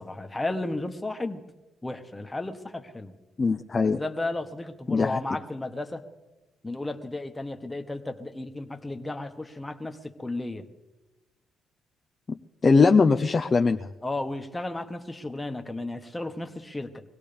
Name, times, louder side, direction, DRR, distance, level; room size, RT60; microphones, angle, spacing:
voice 1, 0.0-1.5 1.8-3.1 3.9-6.0 6.6-10.7 14.0-17.0, left 2 dB, 15° left, 6 dB, 1.3 m, -34 dB
voice 2, 3.4-4.0 4.9-5.2 12.3-12.4 12.6-13.9, left 4 dB, 35° left, 5 dB, 0.6 m, -21 dB
23.5 x 17.0 x 3.5 m, 1.1 s
cardioid pair, 90°, 0 cm